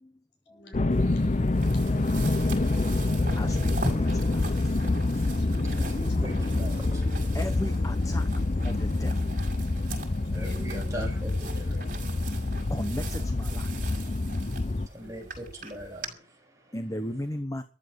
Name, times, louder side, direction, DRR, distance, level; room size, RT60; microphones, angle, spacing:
voice 1, 0.5-2.1 5.2-6.6 10.4-12.3 15.0-15.3 15.6-16.2, left 1 dB, 65° left, 7.4 m, -51 dB
sound 1, 0.7-14.9, left 2 dB, 40° left, 0.7 m, -27 dB
sound 2, 0.9-16.1, right 4 dB, 45° right, 6.5 m, -44 dB
voice 2, 3.4-4.4 5.9-6.0 6.8-7.0 7.3-8.3 8.6-9.1 10.4-10.6 11.4-11.6 12.7-13.6 16.7-17.6, equal, 20° left, 1.2 m, -35 dB
voice 3, 5.7-7.4 9.0-9.2 10.2-11.7 14.8-16.8, equal, 15° right, 7.1 m, -41 dB
14.5 x 12.0 x 6.9 m
head